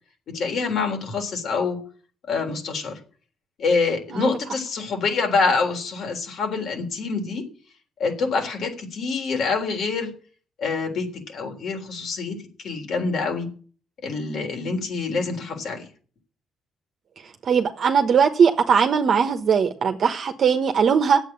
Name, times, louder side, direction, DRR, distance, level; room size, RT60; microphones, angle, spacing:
voice 1, 0.3-1.8 2.3-3.0 3.6-7.4 8.0-10.1 10.6-12.4 12.6-13.5 14.0-15.9, left 4 dB, 65° left, 3.6 m, -26 dB
voice 2, 17.5-21.2, right 6 dB, 55° right, 1.1 m, -19 dB
9.1 x 8.0 x 8.7 m
cardioid pair, 90°, 0 cm